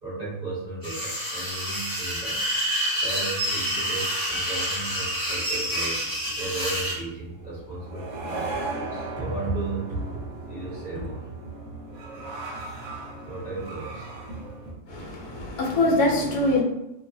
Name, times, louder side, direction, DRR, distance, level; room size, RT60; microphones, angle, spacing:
voice 1, 0.0-2.4 3.0-6.0 6.4-10.1 10.5-11.3 13.3-14.1, right 2 dB, 30° right, -8 dB, 0.9 m, -34 dB
sound 1, 0.8-7.0, equal, 20° left, 0.6 m, -28 dB
sound 2, 4.3-14.7, right 3 dB, 70° right, 1.0 m, -38 dB
voice 2, 14.9-16.6, left 2 dB, 70° left, -1 dB, 1.1 m, -23 dB
2.6 x 2.3 x 2.6 m, 0.91 s
omnidirectional pair, 1.7 m